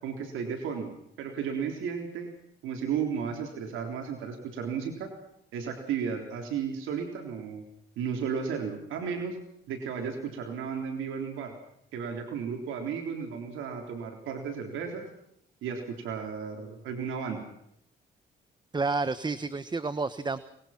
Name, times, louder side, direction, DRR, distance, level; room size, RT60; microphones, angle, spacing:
voice 1, 0.0-2.3 2.6-5.1 5.5-7.6 8.0-9.4 9.7-11.5 11.9-15.1 15.6-17.4, right 6 dB, 90° right, 3 dB, 3.6 m, -34 dB
voice 2, 18.7-20.4, right 3 dB, 20° right, 14 dB, 1.0 m, -30 dB
24.5 x 21.0 x 5.9 m, 0.76 s
cardioid pair, 90°, 20 cm